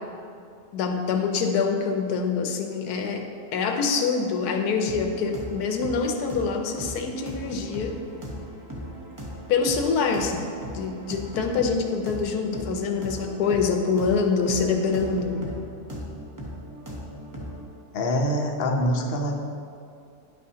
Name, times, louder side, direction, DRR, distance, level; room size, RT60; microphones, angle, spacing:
voice 1, 0.7-3.3 3.5-8.0 9.5-10.5 10.7-15.6, left 5 dB, 85° left, 4 dB, 1.2 m, -25 dB
sound 1, 4.9-17.7, equal, 20° right, 0.6 m, -38 dB
voice 2, 17.9-19.4, equal, 50° left, 1 dB, 0.7 m, -25 dB
10.0 x 5.5 x 2.8 m, 2.5 s
omnidirectional pair, 1.6 m